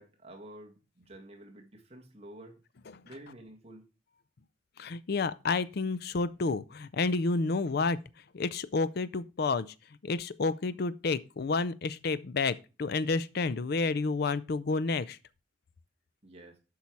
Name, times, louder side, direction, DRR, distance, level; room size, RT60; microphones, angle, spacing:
voice 1, 0.0-2.6 3.0-3.8 16.2-16.6, right 1 dB, 35° right, 1.7 m, -50 dB
voice 2, 4.8-8.0 8.3-9.7 10.0-15.2, left 3 dB, 55° left, 0.5 m, -30 dB
8.5 x 5.5 x 4.7 m
head